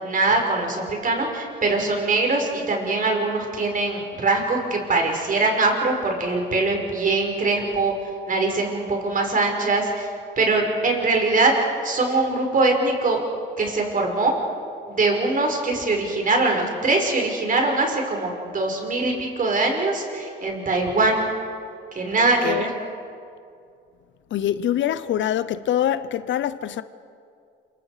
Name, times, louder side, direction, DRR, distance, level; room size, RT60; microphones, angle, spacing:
voice 1, 0.0-7.9 8.3-10.1 10.4-11.5 11.8-13.2 13.6-14.3 14.9-21.3 22.0-22.7, right 3 dB, 45° right, 5.4 m, -22 dB
voice 2, 24.3-26.8, left 11 dB, 70° left, 0.8 m, -24 dB
27.5 x 25.0 x 5.0 m
cardioid pair, 90°, 20 cm